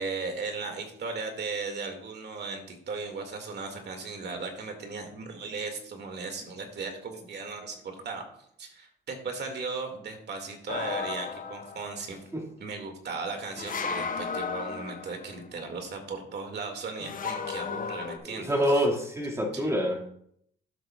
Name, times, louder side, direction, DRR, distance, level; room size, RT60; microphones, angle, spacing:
voice 1, 0.0-8.2 8.6-12.2 12.6-18.9 19.4-19.7, right 4 dB, 60° right, 4 dB, 2.0 m, -37 dB
sound 1, 10.7-12.0 13.6-15.4 17.0-18.2, left 5 dB, 45° left, 0.8 m, -34 dB
voice 2, 18.2-20.1, equal, 15° right, 1 dB, 2.0 m, -27 dB
12.0 x 7.0 x 2.3 m, 0.68 s
cardioid pair, 90°, 20 cm